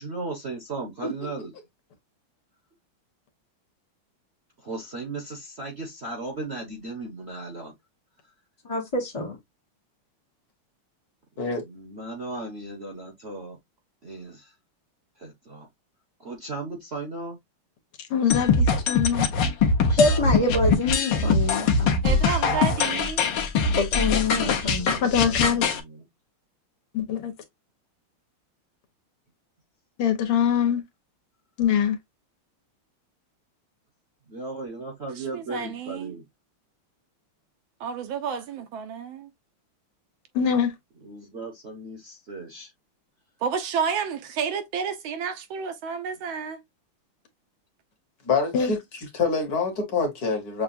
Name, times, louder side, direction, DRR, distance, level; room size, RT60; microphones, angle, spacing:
voice 1, 0.0-1.5 4.6-7.7 11.6-13.6 14.0-14.5 15.2-15.7 16.2-17.4 19.8-20.5 22.7-23.0 24.5-26.1 34.3-36.2 41.0-42.7, right 2 dB, 45° right, 0.9 m, -36 dB
voice 2, 8.7-9.3 20.0-22.0 23.8-24.9, left 2 dB, 25° left, 0.6 m, -25 dB
voice 3, 18.1-19.3 25.0-25.7 26.9-27.3 30.0-30.8 31.6-32.0 40.4-40.7 48.5-48.7, left 8 dB, 80° left, 1.9 m, -23 dB
sound 1, 18.3-25.8, left 4 dB, 65° left, 1.4 m, -22 dB
voice 4, 22.0-23.3 35.1-36.2 37.8-39.3 43.4-46.6, right 6 dB, 75° right, 1.4 m, -30 dB
voice 5, 48.3-50.6, left 4 dB, 50° left, 1.6 m, -26 dB
6.6 x 2.3 x 2.5 m
omnidirectional pair, 2.4 m